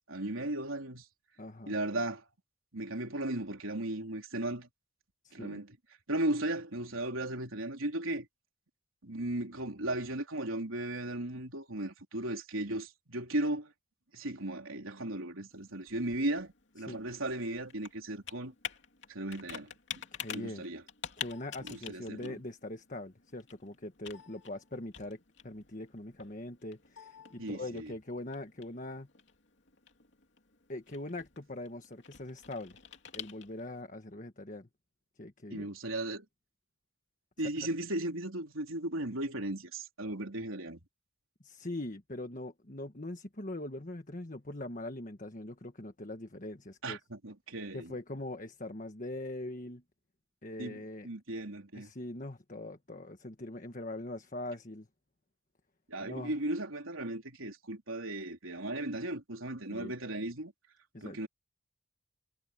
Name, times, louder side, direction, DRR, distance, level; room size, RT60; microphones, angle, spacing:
voice 1, 0.1-1.1 1.7-2.3 2.7-4.7 5.3-5.8 6.1-8.3 9.0-13.7 14.1-18.5 19.1-19.7 20.3-20.8 21.6-22.4 27.4-27.9 35.5-36.3 37.4-40.8 46.8-47.9 50.6-51.9 55.9-60.5 61.0-61.3, right 1 dB, 85° right, 3.7 m, -36 dB
voice 2, 1.4-1.7 5.2-5.6 16.8-17.0 20.1-20.6 21.2-29.1 30.7-32.8 33.1-34.7 35.2-35.7 37.4-37.7 41.4-47.0 47.7-49.8 50.4-51.1 51.7-54.9 56.0-56.4 59.7-59.9 60.9-61.3, left 1 dB, 40° left, 1.5 m, -42 dB
Computer keyboard, 15.5-33.8, left 9 dB, 60° left, 3.0 m, -48 dB
head